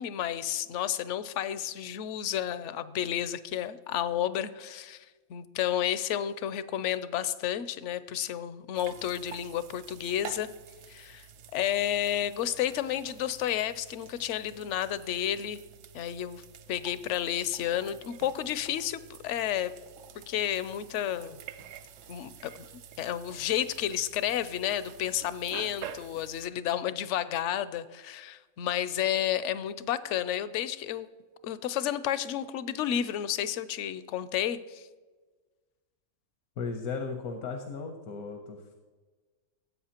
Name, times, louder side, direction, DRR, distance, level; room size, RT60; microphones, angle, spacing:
voice 1, 0.0-5.0 5.3-10.5 10.9-11.3 11.5-15.6 15.9-16.4 16.7-19.7 20.1-21.4 22.1-22.6 23.0-31.1 31.4-34.8, left 11 dB, 65° left, 14 dB, 0.8 m, -31 dB
sound 1, 8.8-26.5, right 8 dB, 70° right, 0.8 m, -48 dB
voice 2, 36.6-38.8, left 4 dB, 85° left, 4 dB, 1.4 m, -36 dB
15.5 x 7.9 x 2.9 m, 1.3 s
omnidirectional pair, 1.5 m